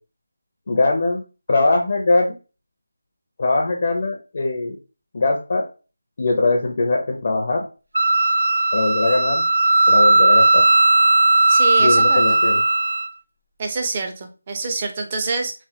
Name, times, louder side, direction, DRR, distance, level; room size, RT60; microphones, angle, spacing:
voice 1, 0.7-1.2 1.5-2.4 3.4-4.8 5.1-5.7 6.2-7.6 8.7-9.4 9.9-10.6 11.8-12.6, left 2 dB, 40° left, 0 dB, 0.5 m, -21 dB
Wind instrument woodwind instrument, 7.9-13.1, right 2 dB, 85° right, 0.7 m, -16 dB
voice 2, 11.5-12.4 13.6-15.5, right 3 dB, 25° right, 4 dB, 0.4 m, -26 dB
3.1 x 2.1 x 2.7 m, 0.33 s
figure-of-eight pair, 170°, 0 cm